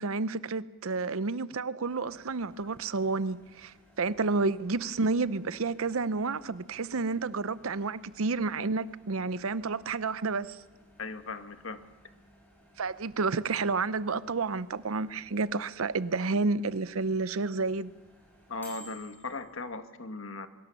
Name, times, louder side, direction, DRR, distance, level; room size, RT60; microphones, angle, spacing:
voice 1, 0.0-10.6 12.8-17.9, right 4 dB, 90° right, 0.7 m, -30 dB
Microwave oven, 1.8-19.6, equal, 10° left, 5.3 m, -58 dB
voice 2, 11.0-11.8 18.5-20.5, left 3 dB, 75° left, 1.4 m, -38 dB
22.5 x 17.0 x 7.0 m
head